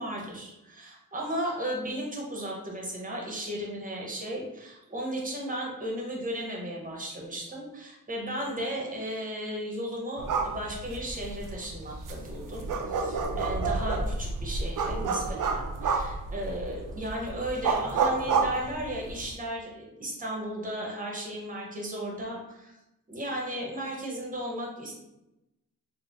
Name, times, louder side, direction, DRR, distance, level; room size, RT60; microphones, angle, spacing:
voice 1, 0.0-22.7 23.1-25.0, right 1 dB, 25° right, -1 dB, 0.8 m, -35 dB
sound 1, 10.2-19.3, right 4 dB, 70° right, 0.5 m, -30 dB
4.0 x 2.1 x 2.4 m, 0.93 s
wide cardioid pair, 90°, 33 cm